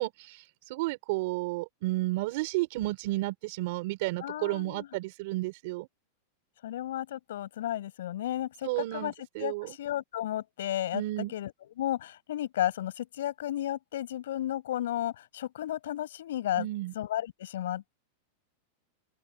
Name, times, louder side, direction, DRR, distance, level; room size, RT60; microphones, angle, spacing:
voice 1, 0.0-5.9 8.6-9.8 10.9-11.3 16.6-16.9, right 19 dB, 55° right, 5.0 m, -32 dB
voice 2, 4.2-4.9 6.6-11.0 11.3-16.7 16.9-18.0, left 12 dB, 85° left, 7.4 m, -33 dB
open air
supercardioid pair, 160°, 0 cm